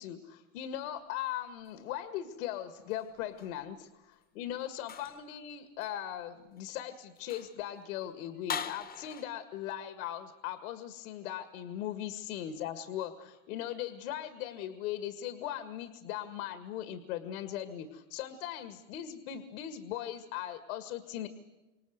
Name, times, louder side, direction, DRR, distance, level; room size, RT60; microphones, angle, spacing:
voice 1, 0.0-21.3, left 11 dB, 80° left, 10 dB, 1.9 m, -39 dB
sound 1, 2.7-3.6 4.8-5.3 5.8-6.0 6.6-6.7 7.2-7.6 8.5-9.2, left 7 dB, 20° left, 1.0 m, -41 dB
28.5 x 26.0 x 8.0 m, 1.1 s
supercardioid pair, 130°, 40 cm